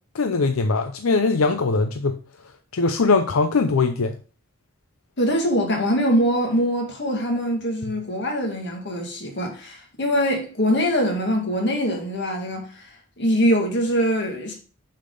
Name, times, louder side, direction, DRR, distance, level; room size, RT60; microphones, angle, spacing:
voice 1, 0.1-2.2 2.7-4.2, left 4 dB, 85° left, 0.6 m, -21 dB
voice 2, 5.2-12.8 13.2-14.5, equal, 55° left, 2.0 m, -23 dB
6.5 x 5.9 x 3.8 m
head